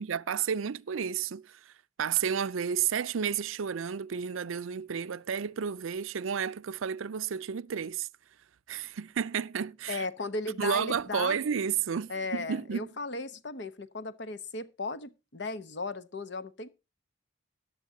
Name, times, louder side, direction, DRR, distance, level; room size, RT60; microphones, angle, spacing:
voice 1, 0.0-1.7 2.0-8.1 8.7-10.0 10.6-12.9, right 7 dB, 90° right, 0.5 m, -31 dB
voice 2, 9.9-11.4 12.1-16.7, left 3 dB, 60° left, 0.9 m, -36 dB
14.5 x 10.5 x 2.7 m
head